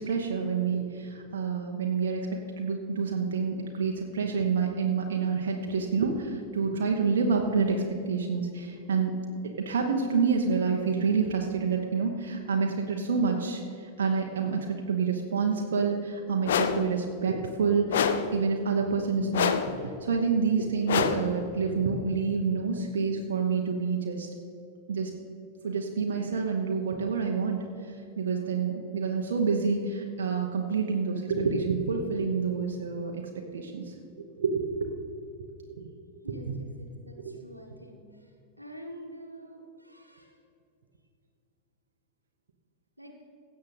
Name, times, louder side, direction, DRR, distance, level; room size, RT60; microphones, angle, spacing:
voice 1, 0.0-9.1 9.4-18.0 18.3-19.6 20.0-24.3 24.9-25.1 25.6-27.6 28.2-33.9 34.4-34.9 35.8-35.9, right 5 dB, 65° right, 1 dB, 1.0 m, -28 dB
sound 1, 16.5-16.9 17.9-18.4 19.3-19.8 20.9-21.4, left 7 dB, 60° left, 0.6 m, -26 dB
voice 2, 36.2-38.3 38.6-40.4 43.0-43.2, equal, 90° right, 2 dB, 1.4 m, -47 dB
16.0 x 7.5 x 4.0 m, 2.5 s
figure-of-eight pair, 90°, 0 cm